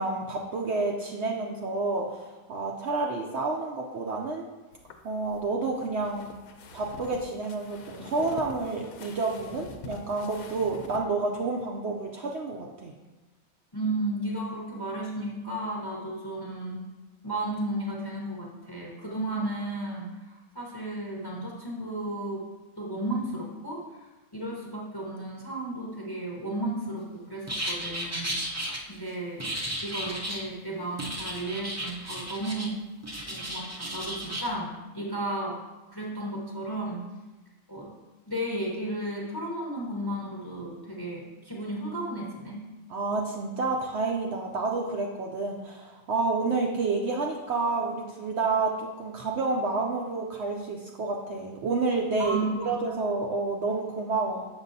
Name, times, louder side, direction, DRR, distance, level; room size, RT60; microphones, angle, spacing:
voice 1, 0.0-4.5 5.0-6.3 6.7-12.9 42.9-52.4 52.7-54.5, right 3 dB, 65° right, 0 dB, 0.7 m, -29 dB
sound 1, 4.7-11.0, left 4 dB, 85° left, 1.1 m, -45 dB
voice 2, 13.7-16.8 17.2-22.4 22.8-28.4 28.9-32.7 33.3-35.6 35.9-37.0 37.7-37.9 38.3-42.7 52.2-52.7, right 1 dB, 20° left, -3 dB, 0.8 m, -34 dB
sound 2, 27.5-28.8 29.4-30.5 31.0-32.7 33.0-34.5, right 1 dB, 20° right, 0.4 m, -34 dB
7.0 x 6.2 x 2.7 m, 1.2 s
omnidirectional pair, 1.5 m